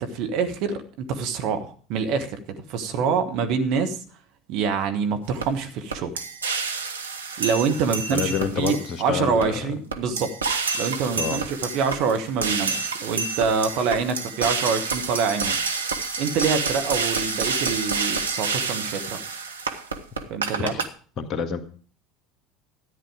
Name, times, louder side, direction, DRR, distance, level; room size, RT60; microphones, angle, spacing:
voice 1, 0.0-4.0 4.5-6.2 7.4-10.3 10.7-15.8 16.2-19.2 20.3-20.7, right 5 dB, 50° right, 8 dB, 1.7 m, -26 dB
sound 1, 5.4-5.5 5.9-9.0 9.4-9.5 9.9-20.9, right 5 dB, 80° right, 1.2 m, -28 dB
voice 2, 8.1-9.7 11.1-11.5 20.6-20.9 21.2-21.6, left 7 dB, 40° left, 9 dB, 1.8 m, -28 dB
13.5 x 9.9 x 5.1 m, 0.41 s
figure-of-eight pair, 65°, 0 cm